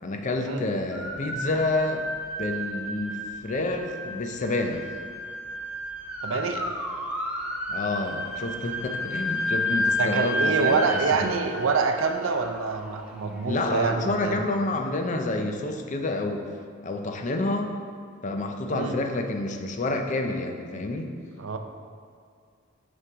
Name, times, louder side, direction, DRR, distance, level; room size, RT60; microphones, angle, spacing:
voice 1, 0.0-2.1 2.4-4.9 7.7-11.0 13.4-16.5 16.8-17.8 18.2-21.1, left 2 dB, 40° left, 4 dB, 0.5 m, -28 dB
sound 1, 0.9-14.0, equal, 5° right, 0.6 m, -32 dB
voice 2, 6.2-6.6 10.0-14.4 18.7-19.0 21.4-21.6, right 4 dB, 85° right, 6 dB, 0.5 m, -26 dB
5.6 x 5.3 x 3.5 m, 2.2 s
head